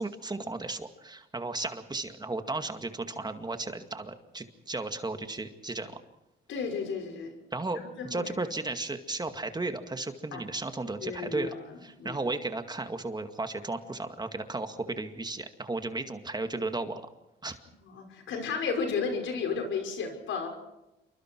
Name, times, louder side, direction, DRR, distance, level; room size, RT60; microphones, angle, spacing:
voice 1, 0.0-6.0 7.5-11.5 11.8-17.0 17.4-17.5, right 2 dB, 20° right, 7 dB, 2.2 m, -34 dB
voice 2, 6.5-7.3 7.7-8.2 10.3-10.4 11.0-12.3 17.8-20.5, left 5 dB, 75° left, 4 dB, 5.9 m, -33 dB
28.0 x 24.0 x 4.7 m, 0.95 s
cardioid pair, 90°, 20 cm